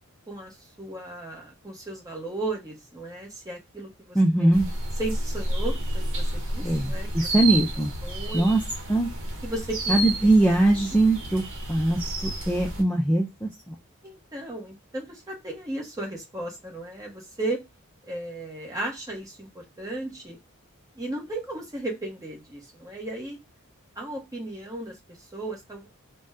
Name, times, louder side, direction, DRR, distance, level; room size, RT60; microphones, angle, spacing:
voice 1, 0.3-4.5 5.0-7.1 8.0-8.5 9.4-10.0 14.0-17.6 18.1-20.4 20.9-23.4 24.0-24.9 25.3-25.9, right 2 dB, 15° right, -1 dB, 1.0 m, -35 dB
voice 2, 4.1-4.7 6.6-7.9 8.3-8.6 8.9-9.1 9.9-13.7, right 2 dB, 5° left, -2 dB, 0.4 m, -22 dB
sound 1, 4.5-12.8, right 1 dB, 60° right, 0.9 m, -31 dB
2.6 x 2.2 x 3.4 m, 0.21 s
head